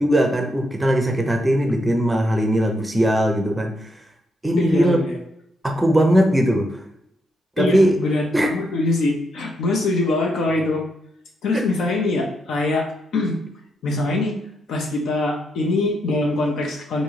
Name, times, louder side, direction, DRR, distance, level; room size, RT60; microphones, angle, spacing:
voice 1, 0.0-3.7 4.4-5.0 5.6-6.7 7.6-8.0 8.3-8.5 11.5-11.6, equal, 10° right, 3 dB, 0.5 m, -19 dB
voice 2, 4.6-5.1 7.6-10.8 11.4-12.9 13.1-13.4 13.8-14.3 14.7-17.0, left 2 dB, 75° left, 0 dB, 0.7 m, -23 dB
3.6 x 2.6 x 3.1 m, 0.76 s
cardioid pair, 135°, 0 cm